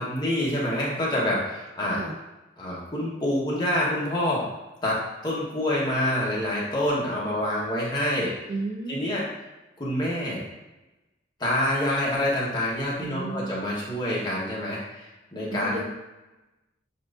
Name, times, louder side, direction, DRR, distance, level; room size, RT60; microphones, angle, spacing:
voice 1, 0.0-2.0 2.6-4.5 4.8-8.3 8.9-9.3 9.8-10.4 11.4-15.8, left 1 dB, 25° left, -5 dB, 1.0 m, -27 dB
voice 2, 8.5-9.1 13.0-13.7 15.5-15.8, right 2 dB, 35° right, 0 dB, 0.4 m, -33 dB
7.0 x 2.5 x 2.4 m, 1.1 s
head